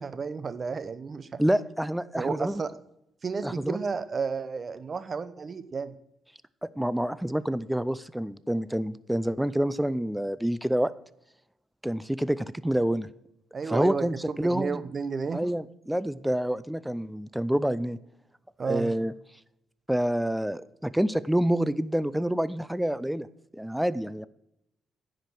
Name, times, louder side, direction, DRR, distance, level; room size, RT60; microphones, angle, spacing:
voice 1, 0.0-1.4 2.2-2.7 3.2-5.9 13.5-14.0 14.4-15.5 18.6-18.9, right 5 dB, 40° right, 13 dB, 0.8 m, -32 dB
voice 2, 1.4-2.6 3.4-3.8 6.6-10.9 11.8-13.1 13.7-14.8 15.3-18.0 18.6-19.1 19.9-23.3 23.5-24.3, right 1 dB, 5° right, 16 dB, 0.4 m, -27 dB
10.0 x 5.1 x 7.7 m, 0.80 s
cardioid pair, 90°, 0 cm